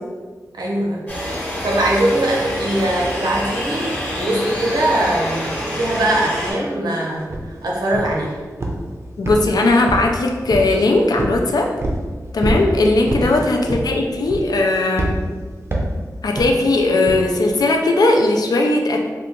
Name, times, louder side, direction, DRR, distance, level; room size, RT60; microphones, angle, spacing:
voice 1, 0.5-1.1 1.6-8.4 13.2-13.3, right 1 dB, 80° right, -4 dB, 0.8 m, -21 dB
sound 1, 1.1-6.5, equal, 20° left, 0.9 m, -26 dB
sound 2, 7.3-7.5 7.9-8.2 8.6-8.9 9.2-10.1 10.5-10.8 11.2-11.4 11.8-12.0 12.4-12.7 13.1-13.3 13.7-14.0 14.3-14.6 15.0-15.2 15.7-16.0 16.4-16.6 17.1-17.2, right 1 dB, 40° right, 0.5 m, -24 dB
voice 2, 9.2-11.7 12.3-15.2 16.2-19.0, left 2 dB, 70° left, 2 dB, 0.4 m, -18 dB
2.8 x 2.3 x 3.6 m, 1.5 s
wide cardioid pair, 80°, 7 cm